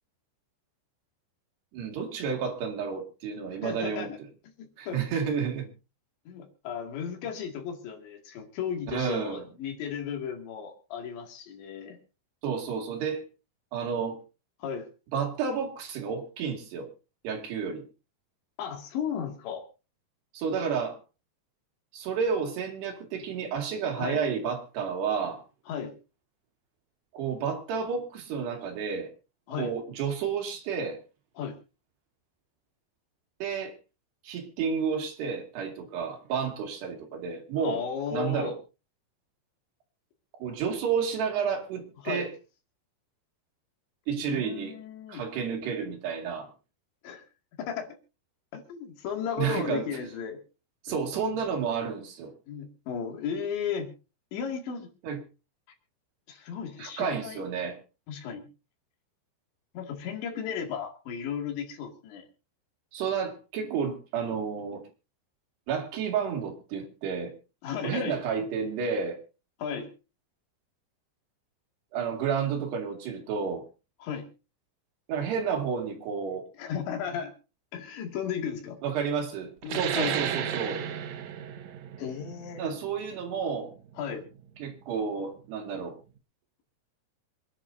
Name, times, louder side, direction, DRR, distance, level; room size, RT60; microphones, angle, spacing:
voice 1, 1.7-4.1 4.8-5.7 8.9-9.5 12.4-13.3 13.7-14.2 15.1-16.9 17.2-17.8 20.3-21.0 21.9-25.4 27.1-29.1 29.5-31.0 33.4-33.8 34.2-37.8 38.1-38.5 40.4-42.3 44.1-44.7 45.1-46.5 49.4-49.9 50.8-52.3 55.0-55.2 56.8-57.8 62.9-64.8 65.7-67.3 67.8-69.2 71.9-73.6 75.1-76.4 78.8-80.8 82.6-83.7 84.6-86.0, right 6 dB, 70° right, 3 dB, 4.3 m, -31 dB
voice 2, 3.6-4.2 4.9-5.0 6.3-12.0 14.6-14.9 18.6-19.6 23.9-24.2 25.7-26.0 29.5-29.7 31.4-31.6 37.6-38.5 42.0-42.3 44.2-45.2 47.0-47.2 47.6-47.9 48.5-50.4 50.9-51.0 52.5-53.9 54.3-54.9 56.3-57.4 58.1-58.5 59.7-62.3 67.6-68.2 69.6-69.9 74.0-74.3 76.6-77.3 77.7-78.8 79.6-80.2 82.0-82.7 84.0-84.2, left 7 dB, 85° left, 3 dB, 4.6 m, -35 dB
sound 1, 79.6-84.8, right 9 dB, 90° right, 1.5 m, -34 dB
26.5 x 10.5 x 2.7 m, 0.32 s
omnidirectional pair, 5.0 m